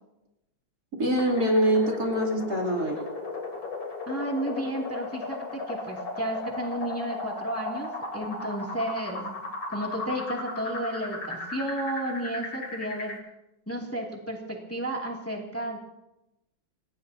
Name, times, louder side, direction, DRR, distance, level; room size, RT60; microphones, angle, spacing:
voice 1, 1.0-3.0, equal, 50° right, 0 dB, 3.6 m, -24 dB
sound 1, 1.2-13.2, left 2 dB, 90° left, 4.2 m, -36 dB
voice 2, 4.1-9.4 9.7-13.2 13.7-15.8, right 1 dB, 5° left, -1 dB, 2.4 m, -32 dB
28.5 x 17.0 x 2.8 m, 0.91 s
omnidirectional pair, 2.1 m